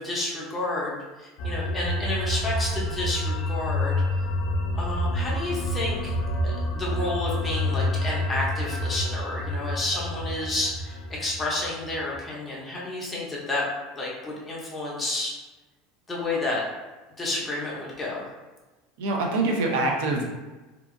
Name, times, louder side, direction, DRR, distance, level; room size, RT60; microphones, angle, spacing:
voice 1, 0.0-4.0 4.8-6.1 6.4-13.7 13.9-15.3 16.1-16.6 17.2-18.2, left 2 dB, 10° left, -5 dB, 0.6 m, -30 dB
sound 1, 1.4-12.2, left 1 dB, 55° left, 0.3 m, -28 dB
voice 2, 19.0-20.2, right 2 dB, 80° right, 1 dB, 0.6 m, -24 dB
2.7 x 2.4 x 2.5 m, 1.2 s
cardioid pair, 175°, 0 cm